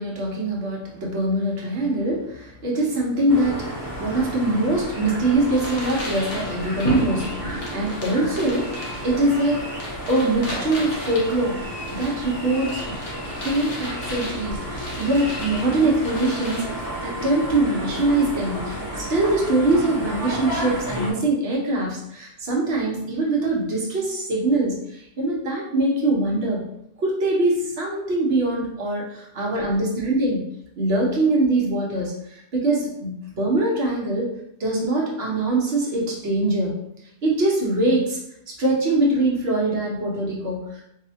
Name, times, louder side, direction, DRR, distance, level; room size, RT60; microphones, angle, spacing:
voice 1, 0.0-9.7 10.1-11.6 11.9-13.0 13.4-16.7 17.0-26.6 27.0-30.4 30.8-34.3 34.6-36.7 37.2-38.2 38.5-40.9, right 2 dB, 65° right, -3 dB, 1.1 m, -23 dB
sound 1, 3.3-21.1, equal, 20° left, 0.7 m, -32 dB
sound 2, 4.9-16.6, left 1 dB, 75° left, 1.2 m, -35 dB
4.6 x 2.1 x 2.7 m, 0.78 s
omnidirectional pair, 1.2 m